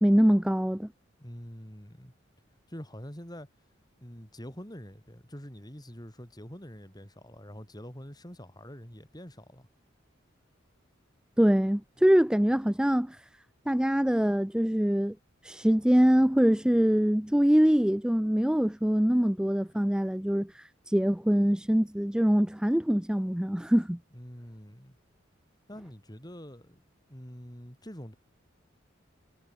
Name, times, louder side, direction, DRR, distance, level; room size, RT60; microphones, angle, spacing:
voice 1, 0.0-0.9 11.4-13.2 13.7-15.2 15.4-24.0, equal, 5° right, 0.4 m, -24 dB
voice 2, 1.2-2.1 2.7-3.5 4.0-9.7 24.1-25.0 25.7-26.8 27.1-28.1, equal, 20° left, 6.2 m, -45 dB
head